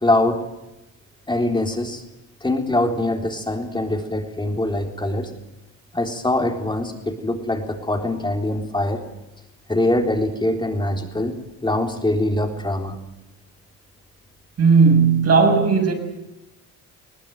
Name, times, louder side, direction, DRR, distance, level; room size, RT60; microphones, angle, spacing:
voice 1, 0.0-0.4 1.3-2.0 2.4-5.3 5.9-9.0 9.7-11.4 11.6-13.0, left 1 dB, 15° left, 3.9 m, -23 dB
voice 2, 14.6-15.9, right 5 dB, 55° right, 7.0 m, -15 dB
21.5 x 19.0 x 9.3 m
cardioid pair, 90°, 30 cm